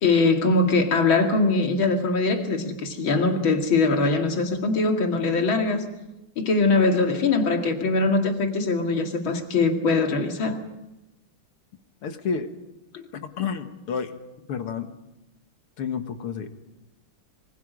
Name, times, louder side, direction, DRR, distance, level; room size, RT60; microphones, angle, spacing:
voice 1, 0.0-5.9 6.4-10.6 12.9-13.0, left 3 dB, 65° left, 4 dB, 3.0 m, -22 dB
voice 2, 12.0-12.5 13.1-14.1 14.5-14.9 15.8-16.5, left 6 dB, 90° left, 7 dB, 2.6 m, -30 dB
26.0 x 24.5 x 5.2 m, 0.94 s
omnidirectional pair, 2.4 m